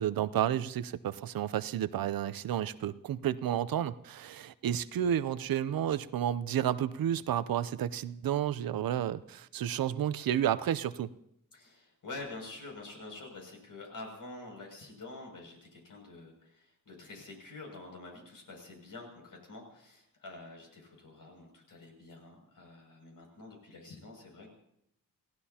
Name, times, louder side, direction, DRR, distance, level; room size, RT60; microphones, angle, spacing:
voice 1, 0.0-11.1, right 10 dB, 80° right, 15 dB, 0.6 m, -31 dB
voice 2, 11.5-24.5, left 2 dB, 65° left, 0 dB, 6.7 m, -47 dB
29.0 x 16.5 x 2.9 m, 0.79 s
wide cardioid pair, 115°, 34 cm